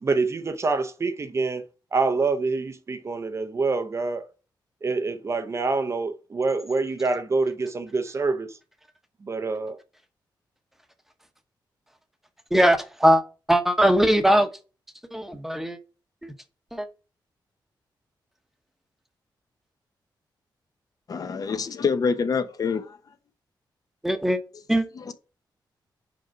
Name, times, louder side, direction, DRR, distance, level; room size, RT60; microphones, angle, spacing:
voice 1, 0.0-1.6 1.9-4.3 4.8-8.6 9.2-9.8, right 3 dB, 35° right, 0.7 m, -26 dB
voice 2, 12.5-13.2 13.5-14.5 15.1-15.8 16.2-16.3 16.7-16.9 24.0-24.4 24.7-24.9, equal, 5° right, 1.0 m, -20 dB
voice 3, 21.1-23.0 25.1-25.2, left 5 dB, 50° left, 0.9 m, -26 dB
5.2 x 4.7 x 5.9 m
wide cardioid pair, 130°, 8 cm